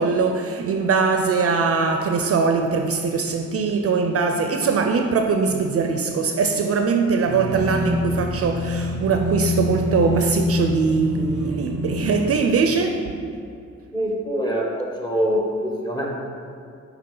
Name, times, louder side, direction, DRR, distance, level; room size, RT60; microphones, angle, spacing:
voice 1, 0.0-13.1, right 4 dB, 50° right, 4 dB, 0.4 m, -21 dB
sound 1, 7.2-12.3, left 1 dB, 80° left, 1.6 m, -26 dB
voice 2, 13.9-16.1, equal, 15° left, -3 dB, 1.1 m, -24 dB
6.6 x 4.6 x 3.9 m, 2.4 s
wide cardioid pair, 125°, 30 cm